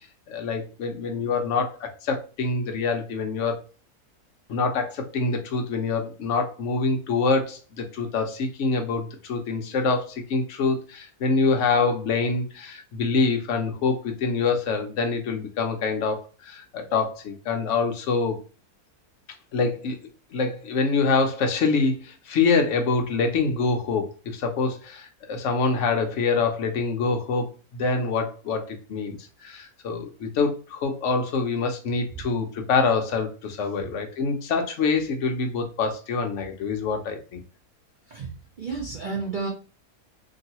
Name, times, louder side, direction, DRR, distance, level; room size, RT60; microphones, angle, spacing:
voice 1, 0.3-3.6 4.5-18.4 19.5-20.0 20.3-29.2 29.4-37.4, left 4 dB, 60° left, 4 dB, 0.9 m, -25 dB
voice 2, 38.6-39.5, right 4 dB, 80° right, 0 dB, 0.4 m, -31 dB
3.0 x 2.8 x 2.8 m, 0.35 s
omnidirectional pair, 1.7 m